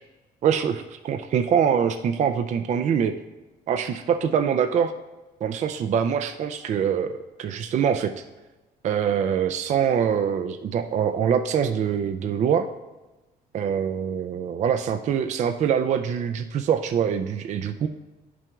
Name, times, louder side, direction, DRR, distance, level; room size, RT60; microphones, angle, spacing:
voice 1, 0.4-3.2 3.7-4.9 5.4-8.1 8.8-12.7 13.5-17.9, right 8 dB, 45° right, 8 dB, 0.4 m, -24 dB
10.5 x 5.9 x 2.3 m, 1.1 s
cardioid pair, 110°, 17 cm